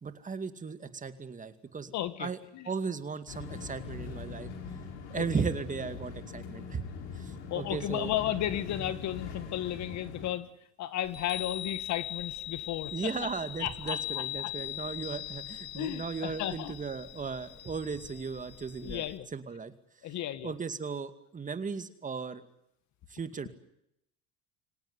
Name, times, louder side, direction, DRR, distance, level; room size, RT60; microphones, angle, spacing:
voice 1, 0.0-1.9 2.2-2.4 2.6-4.5 5.1-6.8 7.1-8.1 12.9-19.7 20.4-22.4 23.1-23.5, right 5 dB, 25° right, 10 dB, 2.3 m, -36 dB
voice 2, 1.9-2.7 5.1-5.3 7.5-10.5 10.8-13.1 13.6-14.5 15.8-16.7 18.8-19.3 20.0-20.5, left 12 dB, 55° left, 13 dB, 1.8 m, -34 dB
sound 1, 3.3-10.3, left 5 dB, 90° left, 4.7 m, -42 dB
Chime, 11.0-19.2, left 12 dB, 30° left, 3.3 m, -40 dB
25.0 x 18.5 x 9.8 m, 0.79 s
supercardioid pair, 105°, 33 cm